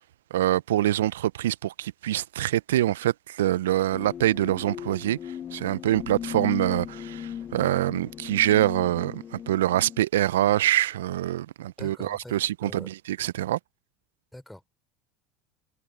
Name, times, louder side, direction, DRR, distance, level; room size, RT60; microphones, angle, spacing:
voice 1, 0.3-13.6, right 13 dB, 75° right, 0.8 m, -25 dB
sound 1, 3.9-10.0, left 9 dB, 40° left, 1.3 m, -37 dB
voice 2, 11.8-12.3 12.6-12.9 14.3-14.7, left 1 dB, 5° left, 3.7 m, -43 dB
hypercardioid pair, 75°, 0 cm